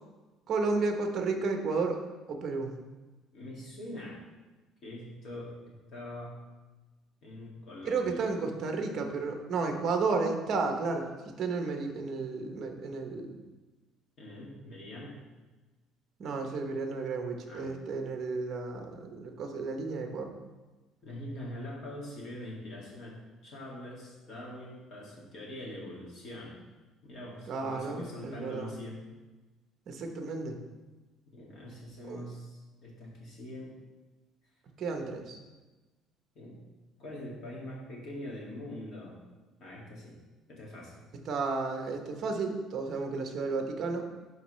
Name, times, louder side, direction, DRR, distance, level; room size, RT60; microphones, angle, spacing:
voice 1, 0.5-2.0 2.3-2.7 7.8-13.3 16.2-20.4 27.5-28.7 29.9-30.6 32.0-32.3 34.8-35.4 41.3-44.1, right 4 dB, 40° right, 4 dB, 0.8 m, -32 dB
voice 2, 3.3-4.2 4.8-6.4 7.2-8.3 14.2-15.2 17.5-17.7 21.0-26.5 27.0-29.0 31.3-33.7 36.3-36.6 37.0-39.2 39.6-40.2 40.5-41.0, left 1 dB, 40° left, -4 dB, 2.0 m, -43 dB
11.5 x 3.9 x 3.1 m, 1.2 s
cardioid pair, 165°, 0 cm